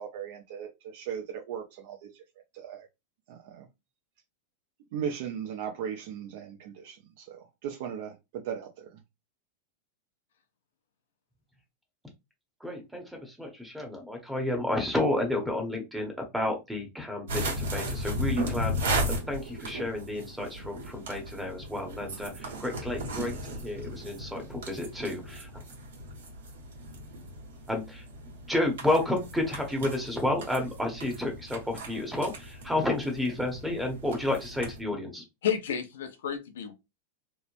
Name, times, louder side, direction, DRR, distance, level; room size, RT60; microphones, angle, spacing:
voice 1, 0.0-2.1 2.5-2.9 3.3-3.7 4.9-9.0, right 8 dB, 65° right, 0.5 m, -37 dB
voice 2, 12.6-25.6 27.7-28.0 28.5-35.2, left 1 dB, 5° right, 0.8 m, -31 dB
sound 1, 17.3-34.8, equal, 90° right, 1.2 m, -36 dB
voice 3, 35.4-36.7, left 8 dB, 85° left, 0.6 m, -31 dB
3.0 x 2.1 x 2.5 m
supercardioid pair, 135°, 0 cm